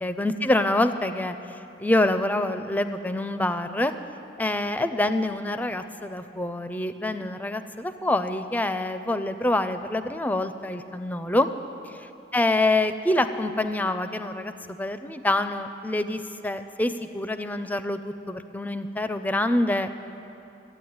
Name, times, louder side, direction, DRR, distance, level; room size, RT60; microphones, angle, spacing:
voice 1, 0.0-3.9 4.4-11.5 11.9-19.9, left 1 dB, 10° left, 10 dB, 0.4 m, -26 dB
14.0 x 9.3 x 9.4 m, 2.9 s
head